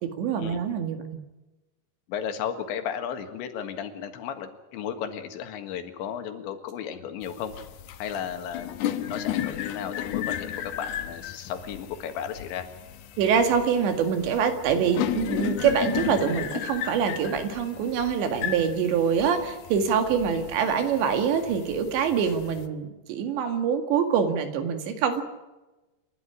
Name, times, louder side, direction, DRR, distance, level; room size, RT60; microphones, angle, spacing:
voice 1, 0.0-1.0 13.2-25.2, right 7 dB, 80° right, 6 dB, 4.3 m, -25 dB
voice 2, 2.1-7.5 8.0-8.8 9.1-12.7 20.3-20.5, left 8 dB, 90° left, 7 dB, 4.0 m, -34 dB
sound 1, 7.2-22.7, left 11 dB, 70° left, 2.9 m, -34 dB
28.0 x 12.0 x 9.9 m, 1.1 s
omnidirectional pair, 5.1 m